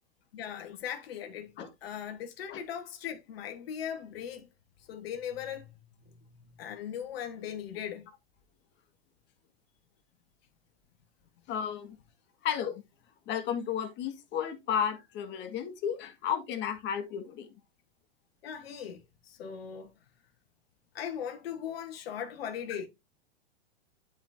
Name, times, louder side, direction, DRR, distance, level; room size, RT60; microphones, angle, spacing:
voice 1, 0.3-4.5 4.9-5.7 6.0-8.1 18.4-19.9 20.9-22.9, left 9 dB, 65° left, 1.4 m, -39 dB
voice 2, 11.5-12.0 12.4-12.8 13.3-17.5, left 8 dB, 35° left, 1.7 m, -33 dB
11.0 x 4.9 x 2.7 m
hypercardioid pair, 115°, 33 cm